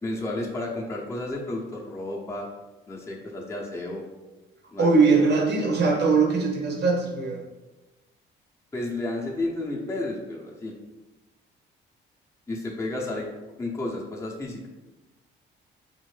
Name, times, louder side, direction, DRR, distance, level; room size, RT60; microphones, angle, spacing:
voice 1, 0.0-2.5 2.9-4.0 4.7-5.4 8.7-10.7 12.5-13.3 13.6-14.7, left 2 dB, 15° left, -2 dB, 0.8 m, -32 dB
voice 2, 4.8-7.4, right 4 dB, 60° right, 0 dB, 1.0 m, -21 dB
4.3 x 2.6 x 3.3 m, 1.1 s
cardioid pair, 90°, 20 cm